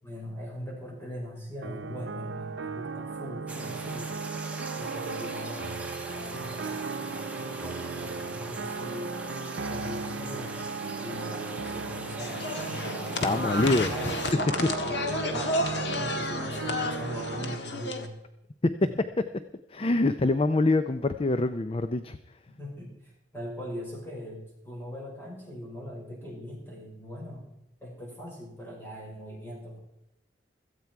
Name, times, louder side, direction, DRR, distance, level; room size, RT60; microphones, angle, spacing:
voice 1, 0.0-4.1 4.8-9.2 9.6-10.6 11.0-13.6 13.9-14.2 14.7-18.2 18.8-18.9 22.5-27.5 27.8-29.8, equal, 15° left, -3 dB, 6.0 m, -40 dB
sound 1, 1.6-17.6, right 4 dB, 85° right, 0.8 m, -36 dB
sound 2, 3.5-14.3, right 2 dB, 5° right, 1.4 m, -41 dB
sound 3, 12.2-18.1, left 2 dB, 65° left, 1.6 m, -32 dB
voice 2, 13.2-14.1 14.6-14.7 18.6-18.7 19.7-22.2, left 2 dB, 30° left, 10 dB, 0.5 m, -25 dB
17.0 x 14.0 x 4.7 m, 0.88 s
head